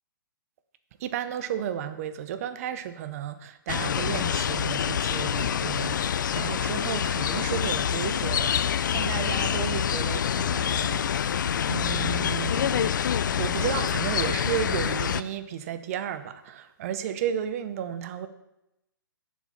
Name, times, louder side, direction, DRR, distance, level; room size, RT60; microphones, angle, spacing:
voice 1, 1.0-13.0 13.4-18.3, right 9 dB, 40° right, 0.7 m, -33 dB
sound 1, 3.7-15.2, left 8 dB, 65° left, 0.4 m, -26 dB
8.9 x 7.3 x 4.3 m
figure-of-eight pair, 130°, 11 cm